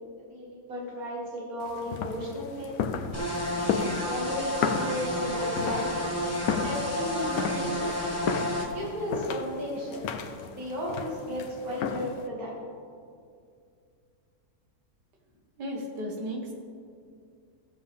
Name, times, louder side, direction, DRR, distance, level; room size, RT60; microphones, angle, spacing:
voice 1, 0.3-2.8 3.5-6.2 6.6-8.0 8.7-10.0 10.5-12.5, equal, 60° right, -4 dB, 2.7 m, -34 dB
sound 1, 1.6-12.3, left 6 dB, 70° left, 1.1 m, -34 dB
sound 2, 3.1-8.7, left 1 dB, 10° left, 1.0 m, -31 dB
voice 2, 15.6-16.5, equal, 85° right, 1 dB, 2.0 m, -34 dB
15.5 x 7.3 x 3.5 m, 2.3 s
omnidirectional pair, 1.8 m